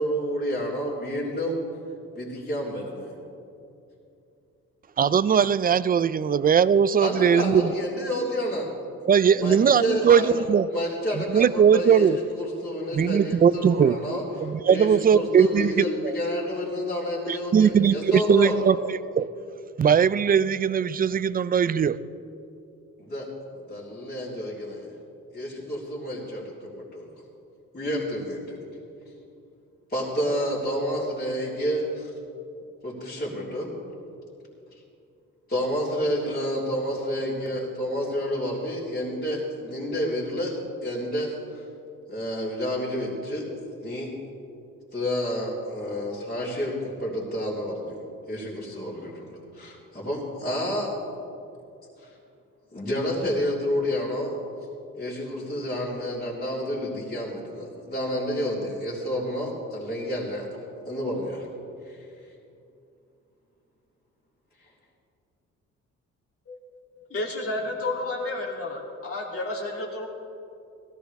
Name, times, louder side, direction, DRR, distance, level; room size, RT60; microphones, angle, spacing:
voice 1, 0.0-1.6 2.2-3.2 7.0-8.7 9.3-10.4 10.7-12.1 12.3-14.2 14.6-18.6 23.0-24.9 25.3-27.1 27.7-28.6 29.9-32.1 32.8-33.7 35.5-40.5 40.8-41.3 42.1-43.5 43.8-44.1 44.9-48.0 48.3-50.9 52.0-52.1 52.7-54.3 54.9-60.5 60.9-61.5 61.8-62.0, equal, 30° left, -10 dB, 3.6 m, -29 dB
voice 2, 5.0-7.7 9.0-10.7 11.2-12.2 12.9-14.0 14.4-16.2 17.3-18.8 19.2-19.3 19.8-22.0, right 7 dB, 30° right, 16 dB, 0.4 m, -20 dB
voice 3, 66.9-70.1, left 2 dB, 50° left, -2 dB, 3.0 m, -31 dB
17.0 x 15.0 x 3.5 m, 2.6 s
cardioid pair, 90°, 30 cm